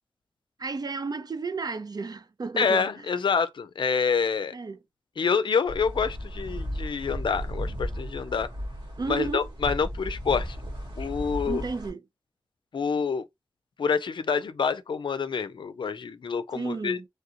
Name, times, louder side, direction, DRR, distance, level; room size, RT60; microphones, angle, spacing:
voice 1, 0.6-3.1 4.5-4.8 9.0-9.5 11.5-12.0 16.5-17.1, right 4 dB, 55° right, 0.5 m, -32 dB
voice 2, 2.6-4.5 5.2-8.5 9.1-10.6 11.0-11.7 12.7-13.2 13.8-17.0, left 5 dB, 75° left, 0.4 m, -27 dB
sound 1, 5.7-11.9, equal, 75° right, 1.5 m, -35 dB
3.2 x 2.4 x 2.7 m
cardioid pair, 60°, 8 cm